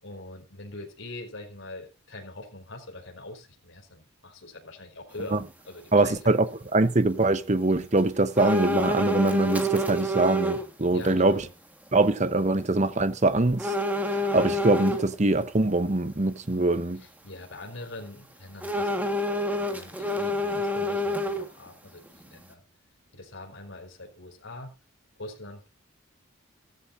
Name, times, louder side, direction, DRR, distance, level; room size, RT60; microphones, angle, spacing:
voice 1, 0.0-5.4 5.6-6.3 10.9-11.5 17.0-22.6 23.1-24.7 25.2-25.8, left 2 dB, 70° left, 4.8 m, -43 dB
voice 2, 5.9-11.5 11.9-17.0, right 2 dB, 35° right, 0.9 m, -23 dB
sound 1, 8.4-10.6 11.1-11.2 13.6-15.0 18.6-21.7 22.1-22.2, equal, 10° right, 1.6 m, -27 dB
15.5 x 14.0 x 2.6 m
head